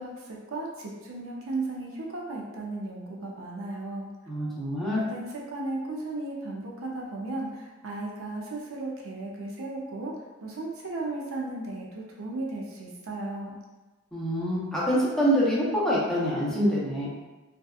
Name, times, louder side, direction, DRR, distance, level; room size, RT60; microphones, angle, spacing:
voice 1, 0.0-4.1 4.9-10.1 10.4-13.6, right 2 dB, 80° right, -2 dB, 0.5 m, -35 dB
voice 2, 4.3-5.0 14.1-17.1, equal, 5° left, -8 dB, 0.6 m, -25 dB
2.7 x 2.3 x 2.3 m, 1.2 s
head